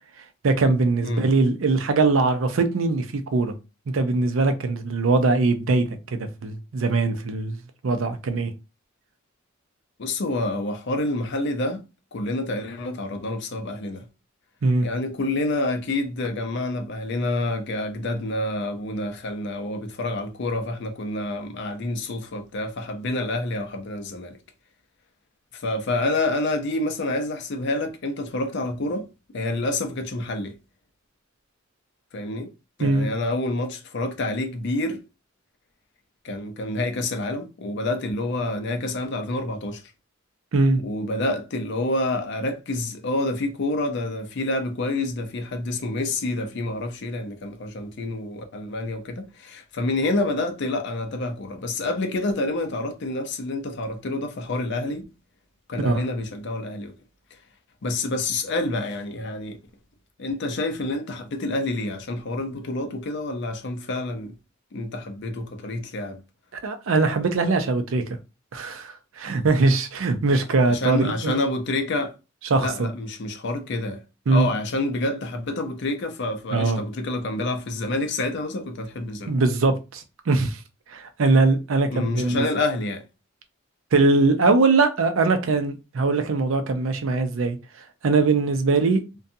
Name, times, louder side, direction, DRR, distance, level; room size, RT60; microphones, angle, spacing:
voice 1, 0.4-3.5 3.9-5.9 6.1-7.6 7.8-8.5 14.6-14.9 32.8-33.1 40.5-40.8 55.8-56.0 66.6-68.0 68.5-71.4 72.5-72.9 74.3-74.5 76.5-76.8 79.3-80.6 80.9-82.5 83.9-87.6 88.0-89.0, right 3 dB, 75° right, 0.5 m, -21 dB
voice 2, 10.0-11.8 12.1-14.1 14.8-24.4 25.5-29.1 29.3-30.5 32.1-32.5 32.8-35.0 36.2-39.8 40.8-55.0 55.7-57.0 57.8-59.6 60.2-64.4 64.7-66.2 70.7-72.1 72.6-79.3 81.9-83.0, left 2 dB, 60° left, 0.5 m, -28 dB
2.6 x 2.2 x 2.6 m
head